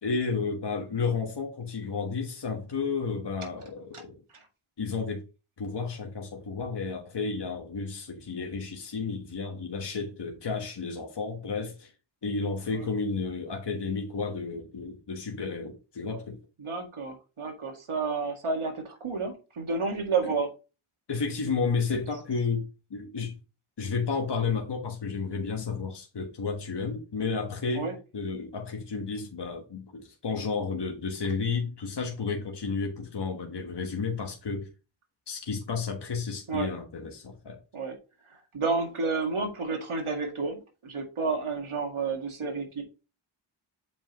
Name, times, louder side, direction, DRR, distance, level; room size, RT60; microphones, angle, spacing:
voice 1, 0.0-4.2 4.8-5.2 5.6-11.9 12.2-16.4 20.2-20.3 21.1-23.4 23.8-34.7 35.3-37.6, left 4 dB, 55° left, 1.3 m, -32 dB
voice 2, 16.6-20.5 27.8-27.9 36.5-36.7 37.7-37.9 38.5-40.6 40.8-42.8, right 4 dB, 80° right, 2.0 m, -30 dB
7.3 x 5.2 x 3.0 m
wide cardioid pair, 75°, 49 cm